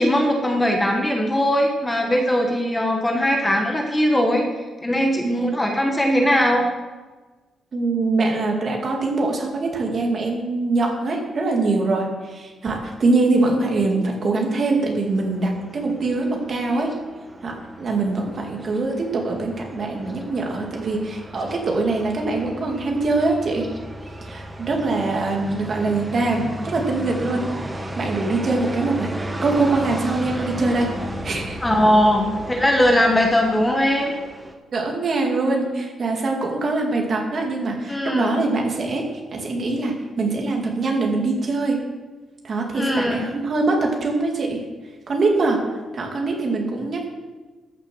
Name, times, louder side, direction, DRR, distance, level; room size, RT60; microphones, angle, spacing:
voice 1, 0.0-4.5 4.8-6.7 31.6-34.1 37.9-38.4 42.7-43.2, equal, 10° left, 1 dB, 1.1 m, -20 dB
voice 2, 5.2-5.6 7.7-16.9 17.4-23.7 24.3-27.4 28.0-29.1 29.4-30.9 31.2-31.6 34.7-41.8 42.4-44.6 45.1-45.6 45.9-47.1, right 3 dB, 40° right, 0 dB, 2.3 m, -23 dB
sound 1, 15.1-34.5, right 1 dB, 10° right, 1.2 m, -34 dB
14.0 x 6.7 x 6.2 m, 1.3 s
wide cardioid pair, 165°, 0 cm